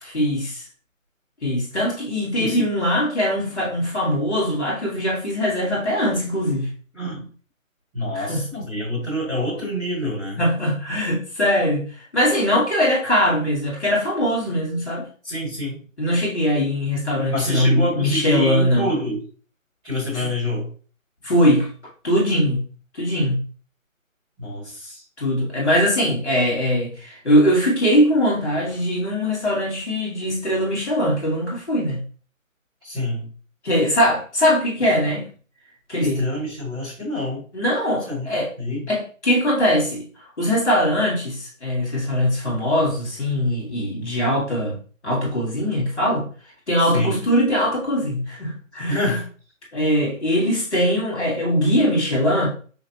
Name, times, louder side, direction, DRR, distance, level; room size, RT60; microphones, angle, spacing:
voice 1, 0.1-0.6 1.4-6.7 8.1-8.4 10.4-15.1 16.0-18.9 20.1-20.3 21.2-21.7 22.0-22.6 22.9-23.4 25.2-32.0 33.6-35.3 35.9-36.2 37.5-38.5 38.9-40.0 40.4-44.8 45.0-46.3 46.7-49.2 49.7-52.5, equal, 55° left, 2.3 m, -21 dB
voice 2, 2.4-2.7 6.9-7.3 7.9-10.4 15.2-15.8 17.3-19.2 19.8-20.7 24.4-25.0 32.8-33.3 36.0-37.4 38.1-38.3 38.6-38.9 46.9-47.2 48.9-49.2, left 1 dB, 5° right, 1.1 m, -27 dB
5.7 x 2.8 x 2.9 m
figure-of-eight pair, 165°, 40 cm